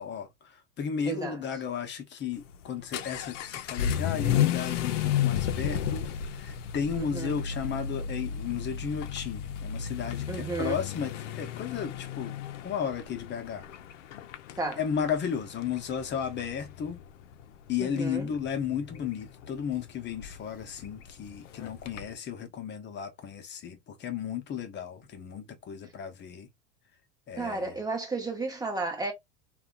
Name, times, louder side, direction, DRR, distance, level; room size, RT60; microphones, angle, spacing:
voice 1, 0.0-12.4 12.6-13.6 14.8-17.0 17.7-26.5 27.3-27.7, left 7 dB, 30° left, 0.7 m, -34 dB
voice 2, 1.1-1.4 7.0-7.4 10.3-10.8 14.6-14.8 17.8-18.3 27.4-29.1, right 3 dB, 10° right, 0.8 m, -33 dB
Vehicle / Accelerating revving vroom, 2.3-22.1, left 9 dB, 85° left, 0.5 m, -34 dB
2.7 x 2.3 x 2.3 m
supercardioid pair, 105°, 35 cm